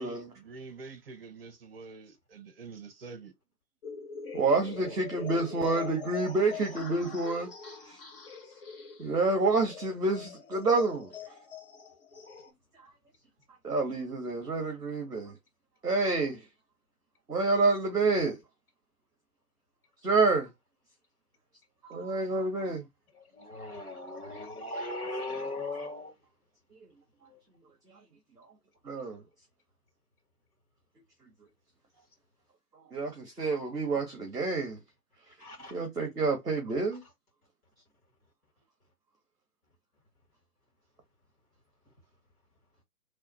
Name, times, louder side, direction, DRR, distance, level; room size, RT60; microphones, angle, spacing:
voice 1, 0.0-3.3 4.8-5.0, right 4 dB, 40° right, 0.8 m, -46 dB
sound 1, 3.8-12.5, left 6 dB, 35° left, 0.9 m, -43 dB
voice 2, 4.3-7.5 7.9-8.0 9.0-11.1 13.6-15.3 15.8-16.4 17.3-18.4 20.0-20.5 21.9-22.9 28.8-29.2 32.9-34.8 35.7-37.0, right 3 dB, 5° left, 0.5 m, -28 dB
voice 3, 23.1-26.1 27.3-27.4 31.9-32.0 35.3-35.8, left 2 dB, 65° left, 2.1 m, -38 dB
3.2 x 2.4 x 4.2 m
figure-of-eight pair, 140°, 47 cm